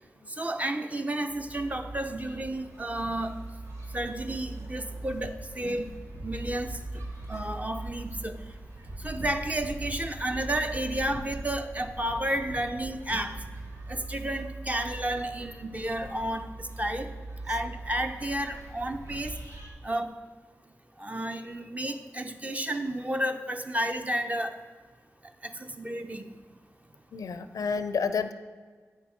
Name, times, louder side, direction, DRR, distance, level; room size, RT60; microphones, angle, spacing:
voice 1, 0.4-3.4 3.9-5.9 6.2-6.8 7.3-8.4 9.0-13.4 13.9-17.1 17.4-19.3 19.8-20.2 21.0-24.5 25.4-26.2, right 1 dB, 25° right, 7 dB, 0.7 m, -31 dB
sound 1, 1.3-19.7, right 2 dB, 60° right, 1.7 m, -41 dB
voice 2, 27.1-28.3, left 5 dB, 85° left, 11 dB, 0.4 m, -29 dB
8.4 x 6.0 x 4.4 m, 1.5 s
cardioid pair, 40°, 6 cm